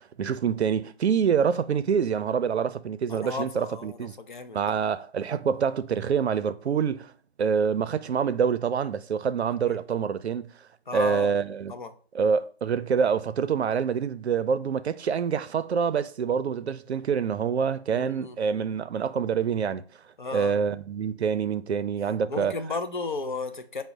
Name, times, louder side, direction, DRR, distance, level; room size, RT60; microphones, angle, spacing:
voice 1, 0.0-4.2 4.5-7.1 7.4-10.5 10.9-11.7 12.1-19.8 20.3-22.6, right 7 dB, 90° right, 0.5 m, -26 dB
voice 2, 3.1-4.6 9.7-9.8 10.9-11.3 11.7-11.9 17.9-18.4 20.2-20.6 22.3-23.8, left 3 dB, 50° left, 0.4 m, -34 dB
4.7 x 2.0 x 3.9 m
figure-of-eight pair, 170°, 32 cm